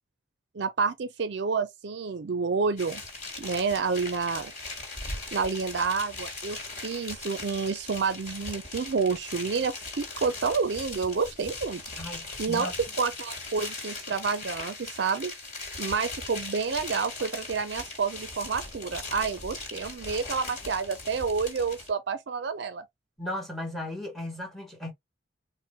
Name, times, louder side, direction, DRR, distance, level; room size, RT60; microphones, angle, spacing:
voice 1, 0.5-3.0 3.4-4.5 5.3-11.8 12.4-12.7 13.0-15.3 15.8-22.8, right 5 dB, 55° right, 0.4 m, -29 dB
sound 1, 2.8-21.9, left 3 dB, 40° left, 1.6 m, -39 dB
voice 2, 12.0-12.7 23.2-24.9, left 1 dB, ahead, 1.1 m, -36 dB
4.3 x 2.1 x 3.0 m
head